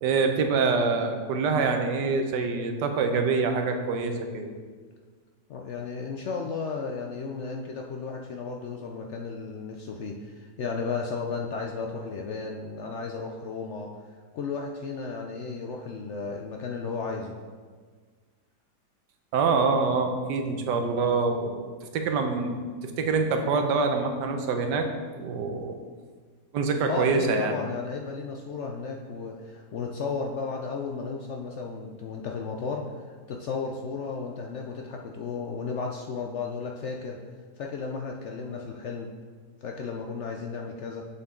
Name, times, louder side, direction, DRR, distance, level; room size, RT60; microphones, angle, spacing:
voice 1, 0.0-4.5 19.3-24.9 25.2-25.8 26.5-27.6, right 4 dB, 80° right, 5 dB, 1.4 m, -25 dB
voice 2, 5.5-13.9 14.3-17.4 26.9-33.0 33.3-37.2 37.6-39.1 39.6-41.0, left 4 dB, 75° left, 1 dB, 0.6 m, -34 dB
6.9 x 6.7 x 3.7 m, 1.6 s
omnidirectional pair, 1.8 m